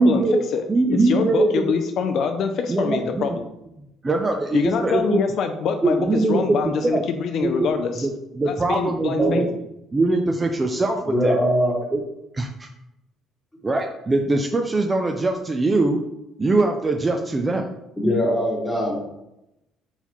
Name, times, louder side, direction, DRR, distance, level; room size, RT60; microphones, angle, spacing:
voice 1, 0.0-0.4 0.7-1.8 2.7-3.4 4.0-5.2 5.8-7.0 7.4-7.7 8.0-9.5 9.9-11.4 11.9-12.0 12.3-12.7 13.6-16.0 16.4-17.6, right 2 dB, 20° right, 4 dB, 0.4 m, -22 dB
voice 2, 0.5-3.4 4.5-6.0 6.3-8.1 8.4-9.4, left 6 dB, 60° left, 6 dB, 0.4 m, -25 dB
voice 3, 11.1-11.7 18.0-19.0, equal, 10° left, -2 dB, 1.2 m, -21 dB
4.1 x 4.0 x 3.0 m, 0.88 s
cardioid pair, 115°, 0 cm